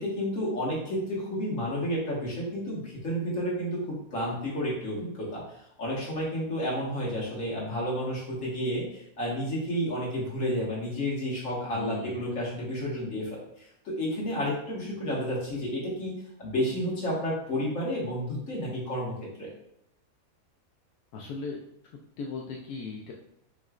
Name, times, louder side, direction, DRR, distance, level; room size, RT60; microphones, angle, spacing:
voice 1, 0.0-3.8 4.1-5.4 5.8-13.4 13.9-16.1 16.4-19.1 19.4-19.5, equal, 60° left, -6 dB, 1.7 m, -31 dB
voice 2, 11.7-12.3 21.1-21.6 22.2-23.1, left 4 dB, 85° left, -2 dB, 1.1 m, -37 dB
5.0 x 3.1 x 2.4 m, 0.76 s
omnidirectional pair, 1.5 m